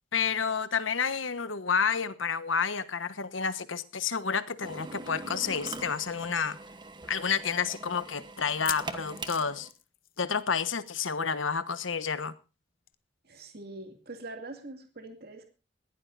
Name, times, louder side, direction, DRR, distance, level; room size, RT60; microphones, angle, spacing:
voice 1, 0.1-6.6 7.1-9.7 10.2-12.3, left 6 dB, 85° left, 13 dB, 1.2 m, -30 dB
Drill, 4.6-9.7, right 3 dB, 25° right, 1.2 m, -43 dB
sound 1, 8.4-10.6 10.8-11.1 11.3-11.4 12.9-13.0, left 13 dB, 50° left, 0.8 m, -41 dB
voice 2, 13.3-15.4, right 2 dB, 55° right, 5 dB, 2.4 m, -43 dB
21.0 x 15.5 x 2.6 m, 0.32 s
head